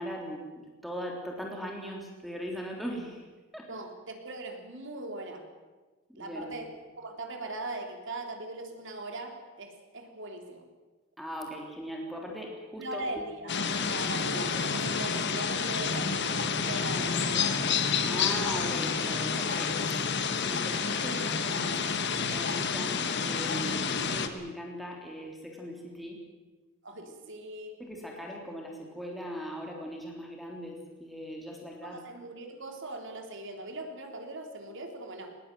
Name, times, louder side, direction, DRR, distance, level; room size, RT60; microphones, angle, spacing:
voice 1, 0.0-3.2 3.5-3.7 6.1-6.5 11.2-13.1 18.0-19.9 20.4-26.2 27.8-32.0, equal, ahead, 0 dB, 3.4 m, -39 dB
voice 2, 3.7-5.4 6.2-6.7 7.0-10.6 12.8-13.5 13.9-17.6 26.8-27.7 31.8-35.4, right 2 dB, 65° right, 4 dB, 3.6 m, -40 dB
sound 1, 13.5-24.3, left 5 dB, 60° left, 1.7 m, -29 dB
20.0 x 19.5 x 9.3 m, 1.3 s
head